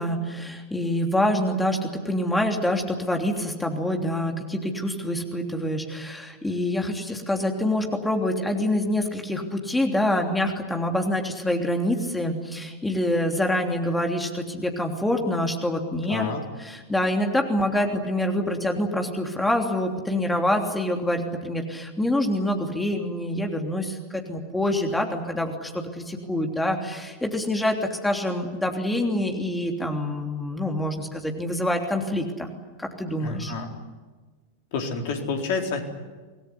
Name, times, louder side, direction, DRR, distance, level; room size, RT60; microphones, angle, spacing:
voice 1, 0.0-16.3 16.6-32.5 32.8-33.5, left 1 dB, 5° left, 3 dB, 3.2 m, -26 dB
voice 2, 16.0-16.4 33.2-33.8 34.7-35.9, left 4 dB, 50° left, 3 dB, 4.3 m, -29 dB
26.5 x 19.5 x 9.9 m, 1.3 s
figure-of-eight pair, 90°, 0 cm